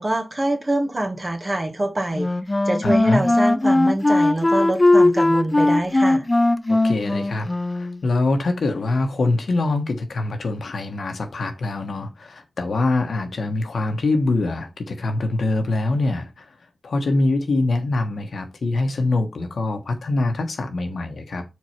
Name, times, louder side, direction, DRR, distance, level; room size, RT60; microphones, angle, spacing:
voice 1, 0.0-2.3 2.7-6.3, right 1 dB, 35° right, 1.6 m, -25 dB
Wind instrument woodwind instrument, 2.1-8.0, left 2 dB, 25° left, 0.5 m, -19 dB
voice 2, 2.8-3.2 6.7-16.5 16.8-21.4, left 2 dB, 80° left, 1.3 m, -24 dB
4.7 x 4.0 x 5.7 m
wide cardioid pair, 75°, 0 cm